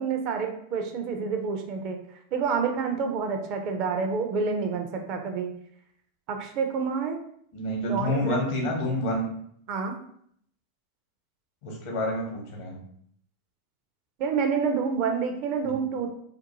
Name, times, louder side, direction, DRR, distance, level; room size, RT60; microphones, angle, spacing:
voice 1, 0.0-2.0 2.3-5.5 6.3-7.2 7.9-8.4 9.7-10.0 14.2-16.1, right 5 dB, 50° right, 5 dB, 0.5 m, -28 dB
voice 2, 7.5-9.2 11.6-12.8 15.7-15.8, left 1 dB, 70° left, -1 dB, 0.8 m, -28 dB
2.6 x 2.2 x 3.0 m, 0.67 s
hypercardioid pair, 95°, 0 cm